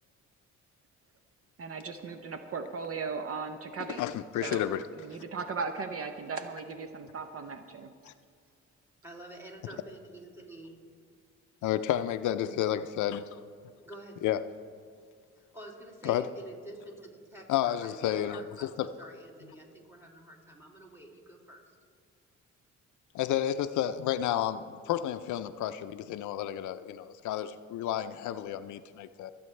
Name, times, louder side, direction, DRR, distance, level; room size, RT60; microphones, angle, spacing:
voice 1, 1.6-4.0 4.4-4.7 5.0-7.9, right 5 dB, 50° right, 7 dB, 0.8 m, -37 dB
voice 2, 4.0-4.8 8.0-8.1 11.6-13.4 14.2-14.4 16.0-16.2 17.5-18.9 23.1-29.3, left 11 dB, 75° left, 11 dB, 0.5 m, -31 dB
voice 3, 9.0-10.8 13.8-14.3 15.4-21.8, right 1 dB, 10° right, 0 dB, 2.7 m, -48 dB
24.5 x 8.6 x 3.3 m, 2.2 s
cardioid pair, 90°, 30 cm